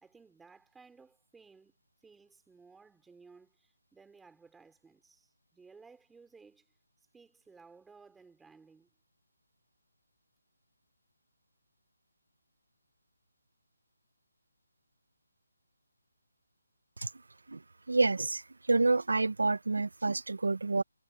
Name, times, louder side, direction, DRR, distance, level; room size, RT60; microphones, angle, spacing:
voice 1, 0.0-1.8 2.0-6.7 7.1-8.9, right 4 dB, 5° right, 3.4 m, -58 dB
voice 2, 17.9-18.4 18.7-20.8, right 3 dB, 85° right, 0.9 m, -28 dB
hypercardioid pair, 170°, 0 cm